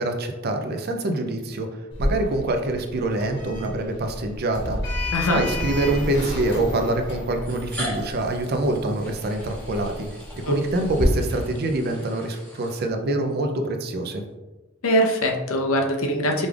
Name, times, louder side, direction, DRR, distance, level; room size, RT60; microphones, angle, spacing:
voice 1, 0.0-1.7 2.0-9.9 10.4-14.2, right 2 dB, 50° right, 5 dB, 0.5 m, -25 dB
Sliding door, 1.9-11.0, left 1 dB, 60° left, 1.4 m, -32 dB
voice 2, 5.1-5.4 10.4-10.6 14.8-16.5, equal, 80° left, 2 dB, 0.7 m, -22 dB
sound 1, 5.1-5.2 6.3-6.4 7.3-13.3, equal, 10° left, 1.2 m, -40 dB
5.2 x 3.3 x 2.4 m, 1.1 s
head